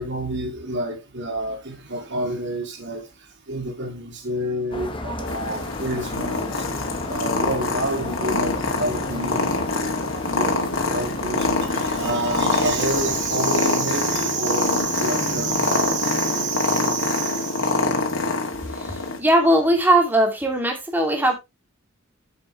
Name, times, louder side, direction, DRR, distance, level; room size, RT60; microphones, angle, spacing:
voice 1, 0.0-3.1 3.5-6.7 7.1-17.7, right 2 dB, 60° right, 2.5 m, -28 dB
sound 1, 4.7-13.4, left 1 dB, 25° left, 1.7 m, -34 dB
Purr, 5.3-19.2, left 3 dB, 75° left, 2.7 m, -25 dB
voice 2, 18.6-21.3, right 1 dB, 10° right, 2.6 m, -19 dB
9.2 x 8.1 x 3.2 m
head